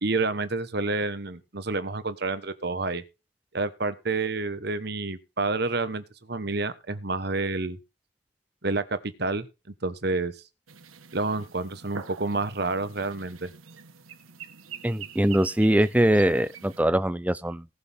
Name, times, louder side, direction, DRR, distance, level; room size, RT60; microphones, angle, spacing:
voice 1, 0.0-3.0 3.5-7.8 8.6-9.5 9.8-10.3 11.1-13.5, right 3 dB, 50° right, 1.3 m, -29 dB
sound 1, 10.7-16.8, right 6 dB, 90° right, 1.3 m, -45 dB
voice 2, 14.8-17.7, right 1 dB, 5° right, 0.5 m, -22 dB
19.5 x 6.8 x 3.6 m
head